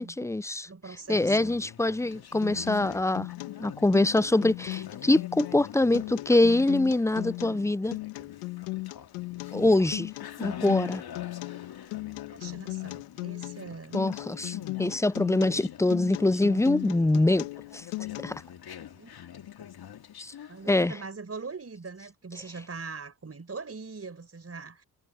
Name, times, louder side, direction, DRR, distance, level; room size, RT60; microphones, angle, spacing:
voice 1, 0.0-0.7 1.1-3.3 3.6-8.0 9.5-10.1 10.4-11.0 13.9-17.5 17.7-17.8 18.2-18.4 20.2-20.3 20.7-20.9, left 2 dB, 5° left, 0.6 m, -24 dB
voice 2, 0.7-1.5 12.1-14.0 18.9-19.1 20.5-24.8, right 4 dB, 35° right, 4.9 m, -41 dB
Conversation, 1.0-20.7, left 9 dB, 60° left, 2.5 m, -45 dB
Acoustic guitar, 2.4-18.4, left 23 dB, 85° left, 2.1 m, -37 dB
hypercardioid pair, 40°, 43 cm